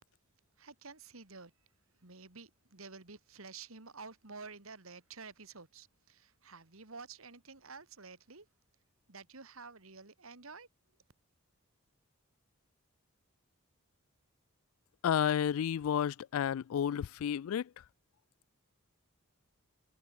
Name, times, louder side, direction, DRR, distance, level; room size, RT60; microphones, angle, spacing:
voice 1, 0.6-8.5 9.1-10.7, right 4 dB, 75° right, 2.5 m, -51 dB
voice 2, 15.0-17.7, left 9 dB, 75° left, 0.3 m, -31 dB
head